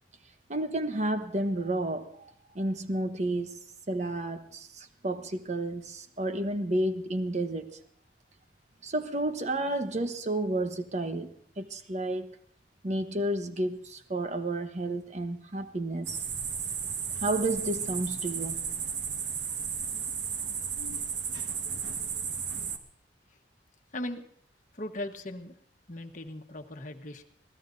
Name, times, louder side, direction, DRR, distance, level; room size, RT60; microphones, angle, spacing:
voice 1, 0.5-3.6 3.9-7.8 8.8-12.3 12.8-16.2 17.2-18.6, right 1 dB, 40° right, 1.1 m, -31 dB
sound 1, 16.0-22.8, right 6 dB, 75° right, 1.6 m, -34 dB
voice 2, 23.9-24.3 24.7-25.6 25.9-27.2, left 1 dB, 45° left, 1.3 m, -38 dB
25.5 x 17.0 x 2.7 m
head